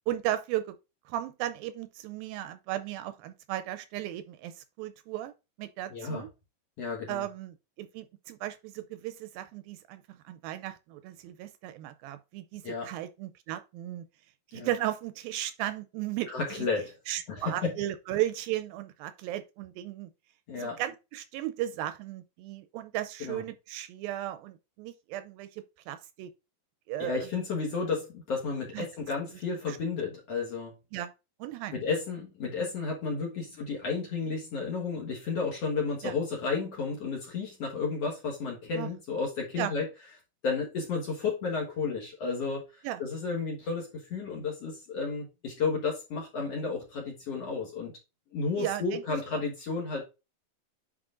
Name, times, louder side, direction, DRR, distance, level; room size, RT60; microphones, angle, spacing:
voice 1, 0.1-0.8 1.1-5.3 5.6-6.3 7.1-14.0 14.5-16.7 17.1-20.1 20.5-26.3 26.9-27.3 28.7-28.9 29.7-29.8 30.9-31.1 31.4-31.7 36.0-36.1 38.7-38.9 39.6-39.7 42.8-43.0 48.6-49.0, right 13 dB, 80° right, 2.2 m, -35 dB
voice 2, 5.9-6.2 6.8-7.2 12.6-12.9 14.5-14.7 16.3-17.0 17.3-17.7 20.5-20.8 23.2-23.4 27.0-30.7 31.7-39.9 40.4-47.9 48.3-50.0, left 4 dB, 55° left, 1.9 m, -32 dB
9.7 x 4.8 x 2.5 m
omnidirectional pair, 4.4 m